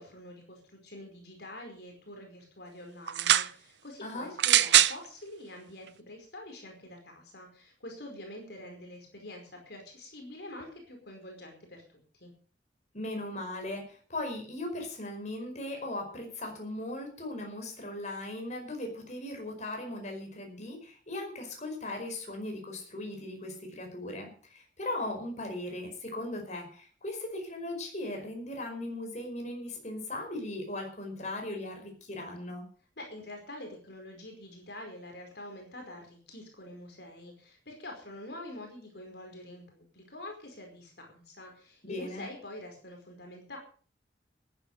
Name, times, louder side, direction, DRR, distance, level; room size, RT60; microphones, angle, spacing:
voice 1, 0.0-12.3 33.0-43.6, left 1 dB, 60° left, 3 dB, 4.9 m, -46 dB
sound 1, 3.1-3.5 4.4-5.0 5.9-6.0, right 12 dB, 70° right, 0.7 m, -22 dB
voice 2, 12.9-32.6 41.8-42.2, left 1 dB, 40° left, 3 dB, 5.1 m, -38 dB
14.5 x 10.5 x 6.6 m, 0.43 s
head